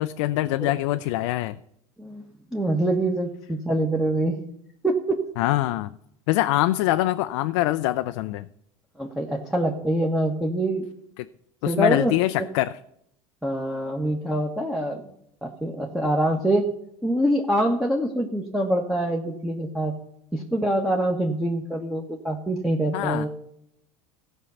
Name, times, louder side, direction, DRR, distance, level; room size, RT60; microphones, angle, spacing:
voice 1, 0.0-1.6 5.4-5.9 6.3-8.5 11.2-11.3 11.6-12.7 22.9-23.3, left 16 dB, 75° left, 10 dB, 0.4 m, -24 dB
voice 2, 2.5-4.4 4.8-5.2 9.0-10.8 11.7-12.1 13.4-15.0 15.4-16.6 17.0-19.9 20.3-23.3, right 1 dB, 5° right, 1 dB, 1.4 m, -25 dB
15.0 x 5.3 x 7.0 m, 0.76 s
hypercardioid pair, 90°, 16 cm